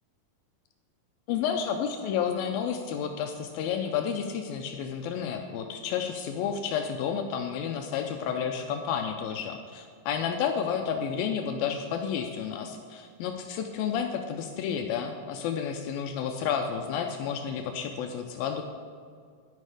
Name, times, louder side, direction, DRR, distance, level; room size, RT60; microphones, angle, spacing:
voice 1, 1.3-18.6, left 7 dB, 80° left, 5 dB, 2.4 m, -31 dB
11.0 x 11.0 x 4.9 m, 2.1 s
omnidirectional pair, 4.4 m